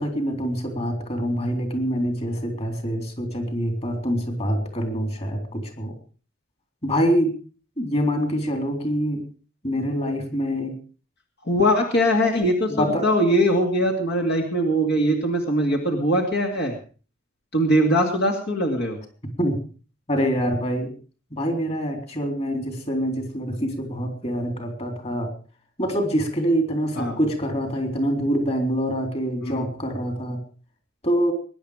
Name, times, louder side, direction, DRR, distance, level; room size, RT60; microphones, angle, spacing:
voice 1, 0.0-6.0 6.8-7.3 7.8-9.2 9.6-10.7 12.7-13.1 19.4-19.6 20.1-20.9 21.3-25.3 25.8-30.4 31.0-31.3, equal, 35° left, 5 dB, 3.8 m, -25 dB
voice 2, 11.4-16.8 17.5-19.0 27.0-27.2 29.4-29.7, equal, 55° left, 2 dB, 2.5 m, -21 dB
21.5 x 10.5 x 5.1 m, 0.39 s
head